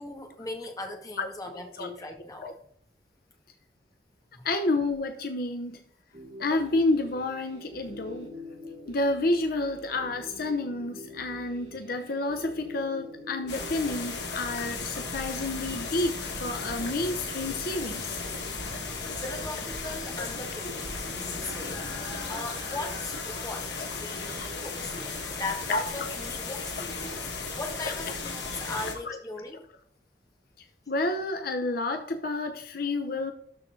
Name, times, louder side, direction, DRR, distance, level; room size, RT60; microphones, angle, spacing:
voice 1, 0.0-2.5 4.3-4.5 19.2-22.0 22.3-29.6, left 2 dB, 20° left, 3 dB, 1.5 m, -39 dB
voice 2, 2.2-2.5 4.4-5.8 6.4-8.3 8.9-18.2 20.2-20.3 21.9-22.0 23.8-23.9 25.3-25.4 25.7-25.8 27.1-27.2 29.1-29.2 30.9-33.3, left 2 dB, 60° left, 6 dB, 0.8 m, -30 dB
sound 1, 6.1-22.4, left 1 dB, 50° right, 3.4 m, -46 dB
sound 2, 13.5-28.9, left 4 dB, 75° left, 2.1 m, -35 dB
12.5 x 4.2 x 3.9 m, 0.64 s
head